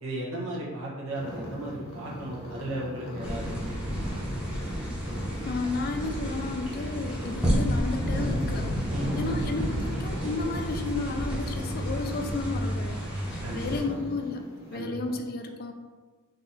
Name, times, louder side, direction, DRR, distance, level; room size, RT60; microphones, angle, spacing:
voice 1, 0.0-3.6 8.9-9.5 13.4-14.0 14.7-15.2, right 1 dB, 65° right, -4 dB, 1.1 m, -35 dB
sound 1, 1.1-14.8, equal, 85° left, 1.1 m, -41 dB
sound 2, 3.2-13.8, equal, 5° right, 0.9 m, -31 dB
voice 2, 5.5-8.7 9.1-14.4 14.7-15.7, left 3 dB, 45° left, 5 dB, 0.4 m, -32 dB
3.9 x 2.8 x 4.0 m, 1.3 s
head